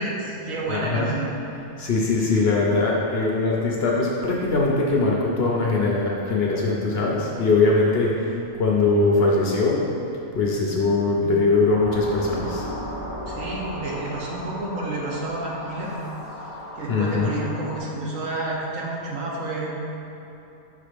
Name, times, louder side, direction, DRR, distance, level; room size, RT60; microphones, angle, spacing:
voice 1, 0.0-1.3 13.3-15.9 16.8-19.7, right 2 dB, 65° right, -3 dB, 1.3 m, -30 dB
voice 2, 0.7-1.1 1.8-9.9 10.3-12.6 16.9-17.3, left 3 dB, 55° left, -3 dB, 0.8 m, -21 dB
sound 1, 11.7-17.8, equal, 15° right, 1.0 m, -35 dB
5.9 x 3.7 x 5.0 m, 3.0 s
omnidirectional pair, 1.5 m